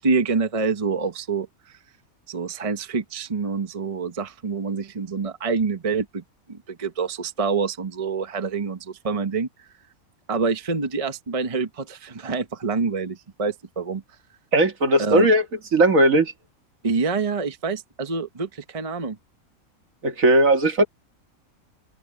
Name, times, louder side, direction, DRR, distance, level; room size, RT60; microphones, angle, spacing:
voice 1, 0.0-1.8 2.3-6.2 6.5-9.5 10.3-14.0 15.0-15.3 16.8-19.2, right 4 dB, 25° right, 1.0 m, -26 dB
voice 2, 14.5-15.4 15.7-16.3 20.0-20.9, right 1 dB, 65° right, 2.2 m, -17 dB
open air
omnidirectional pair, 1.5 m